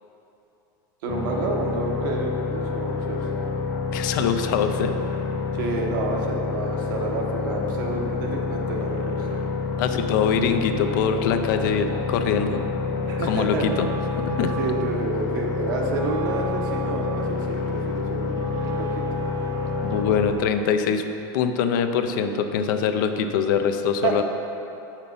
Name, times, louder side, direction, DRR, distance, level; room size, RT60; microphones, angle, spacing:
voice 1, 1.0-3.3 5.5-9.4 13.1-13.7 14.6-18.9 24.0-24.1, right 3 dB, 75° right, 0 dB, 1.2 m, -29 dB
sound 1, 1.1-20.3, left 4 dB, 30° left, 0.6 m, -28 dB
voice 2, 3.9-4.9 9.8-12.6 13.3-13.9 14.4-14.5 19.8-21.0 21.3-24.2, left 7 dB, 70° left, 7 dB, 0.6 m, -23 dB
Wind instrument woodwind instrument, 13.5-20.3, right 8 dB, 35° right, 0.4 m, -37 dB
6.8 x 5.8 x 5.4 m, 2.9 s
supercardioid pair, 145°, 11 cm